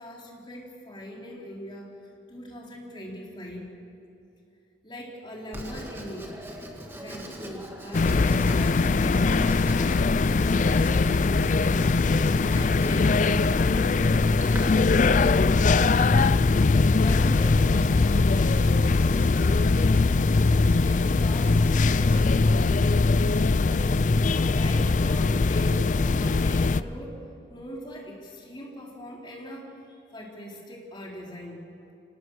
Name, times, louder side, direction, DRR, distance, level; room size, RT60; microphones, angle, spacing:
voice 1, 0.0-1.9 2.3-3.7 4.8-6.3 7.0-11.6 12.4-14.0 14.3-15.3 16.8-19.1 20.8-24.1 24.5-27.2 27.5-31.7, equal, 25° left, -2 dB, 3.9 m, -41 dB
Writing, 5.5-22.2, equal, 15° right, 2.1 m, -42 dB
sound 1, 7.9-26.8, left 3 dB, 45° left, 0.4 m, -21 dB
26.0 x 18.5 x 6.4 m, 2.7 s
head